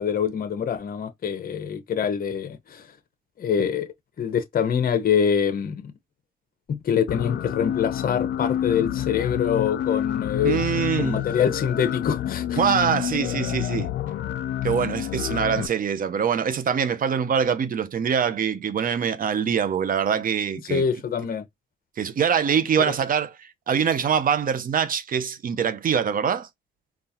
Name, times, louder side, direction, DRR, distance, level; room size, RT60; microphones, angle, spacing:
voice 1, 0.0-2.9 3.4-3.9 4.2-5.9 6.7-12.6 20.7-21.4, left 7 dB, 45° left, 0.8 m, -25 dB
sound 1, 7.1-15.7, left 11 dB, 65° left, 0.4 m, -28 dB
voice 2, 10.4-11.2 12.6-13.9 14.6-20.8 22.0-26.5, right 7 dB, 45° right, 0.6 m, -24 dB
3.9 x 2.4 x 2.8 m
cardioid pair, 90°, 20 cm